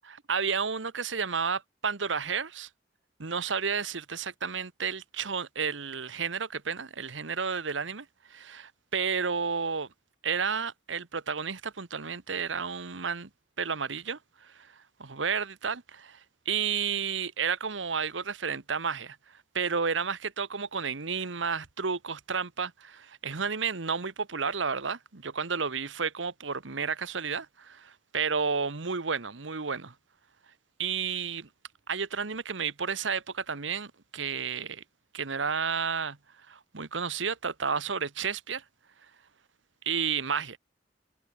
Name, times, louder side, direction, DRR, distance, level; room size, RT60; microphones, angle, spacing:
voice 1, 0.0-2.7 3.2-8.0 8.3-9.9 10.2-13.3 13.6-14.7 15.0-16.2 16.4-19.2 19.5-29.9 30.8-31.5 31.9-34.8 35.1-36.2 36.5-38.6 39.8-40.6, right 6 dB, 90° right, 1.3 m, -31 dB
head